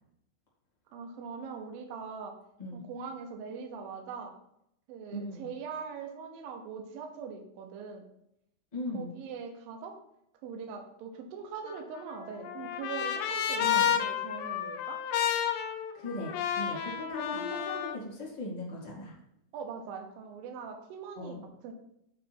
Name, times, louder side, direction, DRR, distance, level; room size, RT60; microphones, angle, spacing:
voice 1, 0.9-2.4 2.7-4.3 4.9-8.1 8.9-10.0 10.4-15.0 17.3-17.5 19.5-21.7, right 6 dB, 70° right, 4 dB, 2.5 m, -41 dB
voice 2, 5.1-5.5 8.7-9.1 13.6-13.9 15.9-19.1 21.2-21.4, left 2 dB, 50° left, -6 dB, 0.4 m, -38 dB
Trumpet, 11.7-18.0, left 9 dB, 85° left, 2.6 m, -31 dB
8.4 x 3.4 x 6.0 m, 0.77 s
omnidirectional pair, 4.7 m